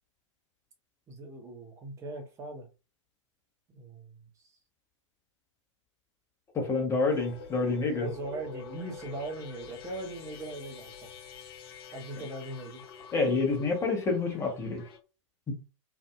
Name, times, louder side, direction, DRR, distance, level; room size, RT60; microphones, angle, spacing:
voice 1, 1.1-2.7 3.7-4.2 7.9-11.1 11.9-12.8, right 2 dB, 20° right, 0.7 m, -40 dB
voice 2, 6.5-8.1 13.1-14.8 15.5-15.6, left 3 dB, 15° left, 1.0 m, -28 dB
sound 1, 7.1-15.0, left 6 dB, 45° left, 0.7 m, -47 dB
2.6 x 2.5 x 2.3 m
figure-of-eight pair, 100°, 17 cm